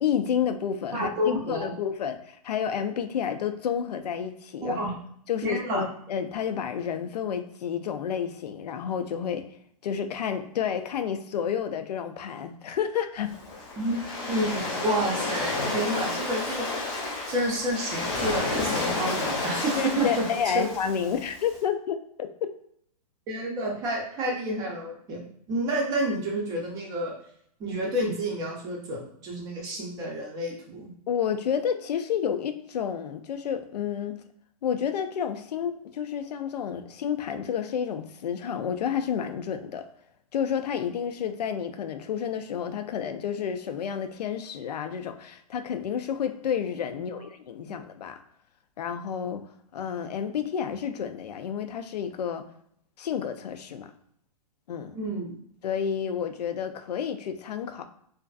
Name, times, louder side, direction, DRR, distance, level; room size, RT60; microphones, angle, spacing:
voice 1, 0.0-1.1 1.5-4.9 5.3-9.4 9.8-13.3 19.8-22.5 31.1-34.2 34.6-39.9 40.3-48.2 48.8-49.4 49.7-52.5 53.0-53.9 54.7-55.0 55.6-57.8, left 8 dB, 85° left, 8 dB, 0.4 m, -30 dB
voice 2, 0.9-1.7 4.6-4.9 5.4-5.8 13.8-14.0 14.3-17.0 17.3-20.2 20.5-20.6 23.3-25.2 25.5-27.1 27.6-30.9 46.9-47.2 47.6-47.7 54.9-55.4, right 1 dB, 20° right, -1 dB, 0.5 m, -29 dB
Waves surf, 13.3-21.5, left 3 dB, 20° left, 0.8 m, -31 dB
2.5 x 2.4 x 2.3 m, 0.67 s
hypercardioid pair, 150°, 20 cm